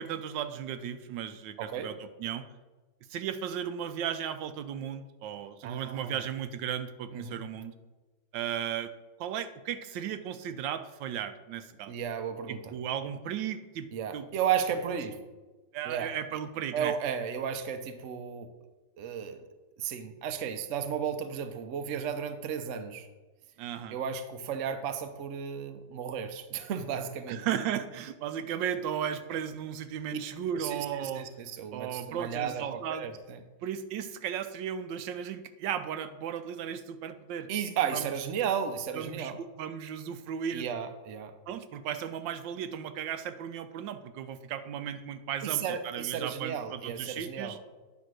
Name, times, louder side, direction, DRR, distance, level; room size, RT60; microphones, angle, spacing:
voice 1, 0.0-1.9 2.2-2.4 3.1-7.7 8.3-8.9 9.2-11.9 12.5-13.9 14.1-14.3 15.7-16.9 23.6-24.0 27.3-31.3 31.7-33.0 33.6-37.5 37.9-38.1 38.9-40.7 41.5-47.6, right 9 dB, 80° right, 10 dB, 1.3 m, -35 dB
voice 2, 1.6-1.9 5.6-6.2 7.1-7.4 11.9-12.7 13.9-15.2 15.8-16.2 16.7-18.5 19.0-19.4 19.8-23.1 23.9-27.4 30.1-30.2 30.5-33.4 37.5-39.4 40.5-41.4 45.4-47.6, right 8 dB, 65° right, 8 dB, 0.8 m, -34 dB
9.6 x 3.6 x 6.1 m, 1.2 s
omnidirectional pair, 2.0 m